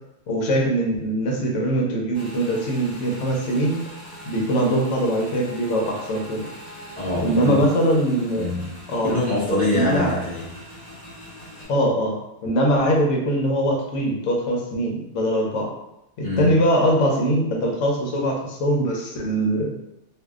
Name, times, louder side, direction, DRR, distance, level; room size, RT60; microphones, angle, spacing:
voice 1, 0.3-3.8 4.2-6.5 7.2-8.5 8.9-9.1 9.7-10.2 11.7-15.7 16.4-19.7, right 1 dB, 80° left, 0 dB, 1.0 m, -22 dB
Motorcycle / Engine, 2.1-11.7, equal, 40° left, 1.0 m, -41 dB
voice 2, 7.0-7.7 8.4-8.8 9.0-10.5 16.2-16.6, left 2 dB, 10° left, -8 dB, 0.7 m, -24 dB
2.6 x 2.2 x 2.3 m, 0.87 s
omnidirectional pair, 1.3 m